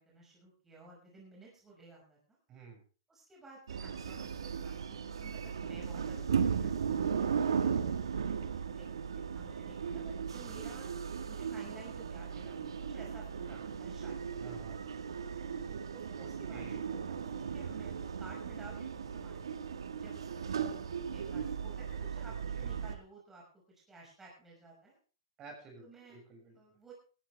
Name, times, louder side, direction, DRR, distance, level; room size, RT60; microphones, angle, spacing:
voice 1, 0.0-2.4 3.1-8.2 8.8-10.9 11.2-14.2 15.6-19.4 19.9-20.7 21.0-25.0 25.8-26.9, right 2 dB, 10° right, -4 dB, 6.0 m, -55 dB
voice 2, 2.5-2.8 14.4-14.8 16.2-16.8 22.6-22.7 25.4-26.8, right 4 dB, 25° right, 2 dB, 6.7 m, -52 dB
sound 1, 3.7-23.0, right 7 dB, 80° right, 1.7 m, -36 dB
17.5 x 14.5 x 3.5 m, 0.38 s
hypercardioid pair, 130°, 3 cm